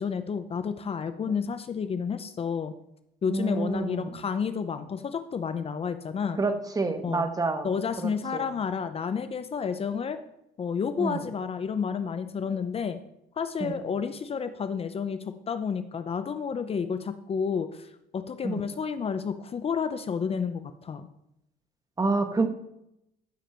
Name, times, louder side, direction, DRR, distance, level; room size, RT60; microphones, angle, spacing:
voice 1, 0.0-2.7 3.2-6.4 7.0-7.3 7.6-10.2 10.6-13.0 13.4-21.1, left 6 dB, 35° left, 10 dB, 0.7 m, -30 dB
voice 2, 3.3-4.2 6.4-7.7 8.0-8.4 11.0-11.2 13.6-13.7 18.4-18.6 22.0-22.5, right 3 dB, 20° right, 7 dB, 1.4 m, -28 dB
14.5 x 7.1 x 4.5 m, 0.82 s
cardioid pair, 110°, 17 cm